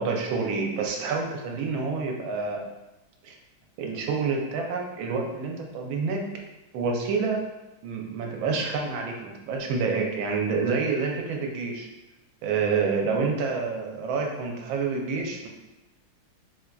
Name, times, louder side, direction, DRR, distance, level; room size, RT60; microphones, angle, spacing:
voice 1, 0.0-2.7 3.2-3.3 3.8-6.4 6.7-7.5 7.8-11.9 12.4-15.5, right 4 dB, 75° right, 1 dB, 1.3 m, -28 dB
4.4 x 2.4 x 2.2 m, 1.0 s
omnidirectional pair, 2.3 m